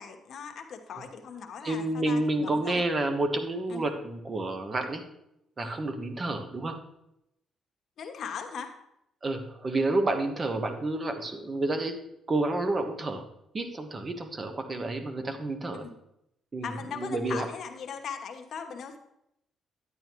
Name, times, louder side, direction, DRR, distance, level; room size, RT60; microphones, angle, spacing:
voice 1, 0.0-2.8 3.7-3.8 5.6-5.8 8.0-8.7 15.7-15.9 16.6-19.0, left 6 dB, 65° left, 5 dB, 1.2 m, -39 dB
voice 2, 1.6-5.0 5.6-6.8 9.2-12.0 12.3-13.2 13.5-15.9 16.5-17.5, right 2 dB, 35° right, 6 dB, 1.2 m, -29 dB
10.0 x 9.2 x 3.0 m, 0.80 s
cardioid pair, 90°, 0 cm